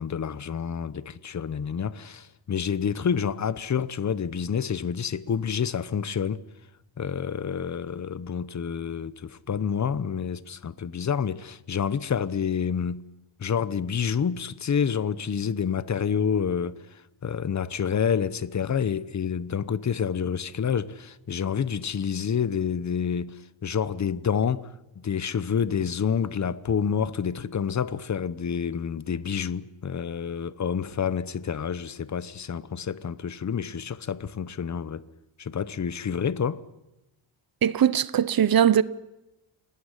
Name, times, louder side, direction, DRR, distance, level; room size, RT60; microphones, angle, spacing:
voice 1, 0.0-6.4 7.0-13.0 13.4-35.1 35.4-36.6, left 7 dB, 35° left, 0.9 m, -28 dB
voice 2, 37.6-38.8, right 9 dB, 45° right, 0.9 m, -20 dB
29.0 x 18.5 x 9.9 m
wide cardioid pair, 170°, 50 cm